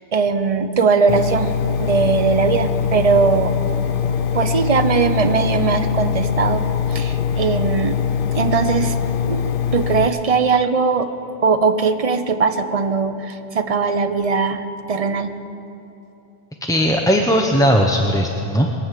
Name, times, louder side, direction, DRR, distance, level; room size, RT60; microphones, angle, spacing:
voice 1, 0.1-1.5 1.8-3.6 4.1-8.0 8.3-9.0 9.3-9.4 9.7-11.1 11.4-15.4, right 5 dB, 40° right, 9 dB, 0.8 m, -19 dB
Engine, 1.1-10.1, left 8 dB, 65° left, 0.8 m, -22 dB
voice 2, 16.6-18.7, equal, 5° left, 1 dB, 0.7 m, -17 dB
21.0 x 8.2 x 7.5 m, 3.0 s
omnidirectional pair, 1.0 m